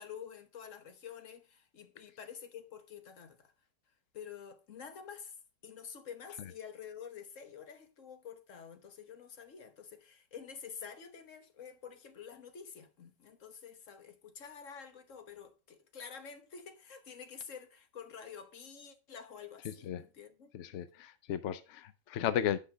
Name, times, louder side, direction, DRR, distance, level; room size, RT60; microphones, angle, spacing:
voice 1, 0.0-3.5 4.1-5.4 5.6-20.5, left 7 dB, 50° left, 1.4 m, -49 dB
voice 2, 19.6-20.0 20.5-22.6, left 10 dB, 70° left, 0.6 m, -35 dB
8.4 x 5.7 x 4.9 m
omnidirectional pair, 1.9 m